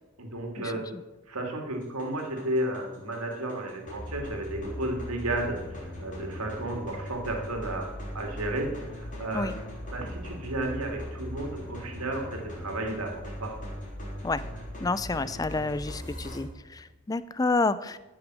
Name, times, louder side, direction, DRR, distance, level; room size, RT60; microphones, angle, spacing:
voice 1, 0.2-0.9 1.3-9.5 9.9-13.5, right 1 dB, 85° right, 2 dB, 2.6 m, -33 dB
sound 1, 1.7-16.4, equal, 35° left, 3.8 m, -40 dB
voice 2, 14.8-18.0, left 3 dB, 15° left, 15 dB, 0.3 m, -29 dB
15.0 x 6.1 x 6.3 m, 1.1 s
head